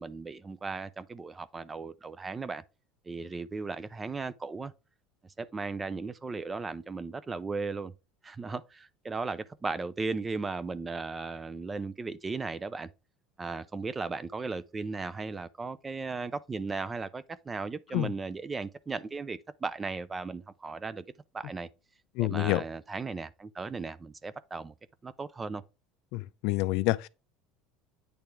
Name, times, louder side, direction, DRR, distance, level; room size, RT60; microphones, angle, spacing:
voice 1, 0.0-2.6 3.1-4.7 5.4-7.9 8.2-12.9 13.4-21.0 21.3-21.7 22.2-24.7 25.0-25.6, right 4 dB, 15° right, 0.4 m, -36 dB
voice 2, 22.2-22.6 26.1-27.1, left 18 dB, 60° left, 0.4 m, -28 dB
8.8 x 3.3 x 4.6 m
cardioid pair, 160°, 0 cm